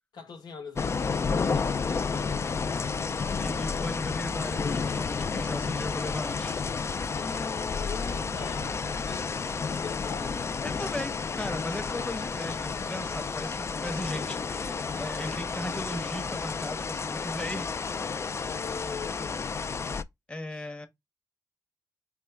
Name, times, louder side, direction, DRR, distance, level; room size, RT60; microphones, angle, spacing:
voice 1, 0.1-2.5 7.1-8.7 9.0-10.4 11.9-12.6 15.2-16.2 18.4-20.0, left 5 dB, 85° left, 1.1 m, -43 dB
sound 1, 0.7-20.0, left 5 dB, 40° left, 0.4 m, -31 dB
voice 2, 3.4-6.6 10.6-17.7 20.3-20.9, left 1 dB, 15° left, 0.9 m, -37 dB
4.4 x 2.2 x 3.4 m
cardioid pair, 75°, 7 cm